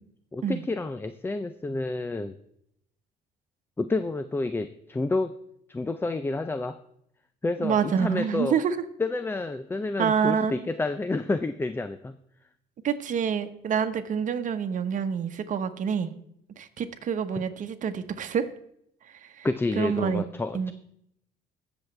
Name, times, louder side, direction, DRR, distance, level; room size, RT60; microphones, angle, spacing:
voice 1, 0.3-2.4 3.8-5.3 5.7-6.8 7.4-8.6 9.0-12.2 19.4-20.7, left 3 dB, 15° left, 0.5 m, -29 dB
voice 2, 7.6-8.8 10.0-10.5 12.8-16.1 16.6-18.5 19.1-19.5 19.7-20.2 20.5-20.7, right 7 dB, 50° right, 1.1 m, -27 dB
21.0 x 7.2 x 3.3 m
cardioid pair, 110°, 17 cm